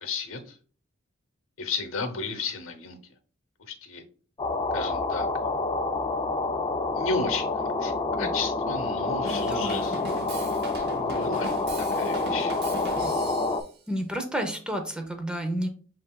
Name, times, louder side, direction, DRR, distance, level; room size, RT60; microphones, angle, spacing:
voice 1, 0.0-0.5 1.6-3.0 3.7-4.0 4.7-5.3 6.9-10.0 10.8-11.5 11.9-12.5, left 4 dB, 85° left, 8 dB, 0.8 m, -33 dB
sound 1, 4.4-13.6, left 3 dB, 25° left, 0.3 m, -28 dB
Drum kit / Drum, 9.2-13.7, right 1 dB, 55° right, 0.8 m, -38 dB
voice 2, 9.3-10.0 13.9-15.7, right 1 dB, 5° right, 4 dB, 0.7 m, -31 dB
7.5 x 2.6 x 2.3 m, 0.41 s
head